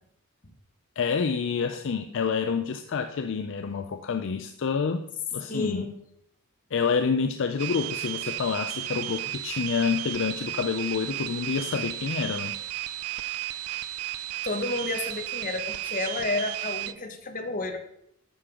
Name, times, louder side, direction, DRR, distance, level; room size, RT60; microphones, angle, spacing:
voice 1, 1.0-5.0 5.3-5.8 6.7-12.6, left 5 dB, 60° left, 7 dB, 0.4 m, -28 dB
voice 2, 5.5-5.9 14.4-17.8, left 2 dB, 40° left, 5 dB, 1.1 m, -31 dB
sound 1, 7.6-16.9, right 15 dB, 80° right, 0.4 m, -34 dB
9.2 x 6.8 x 3.7 m, 0.74 s
head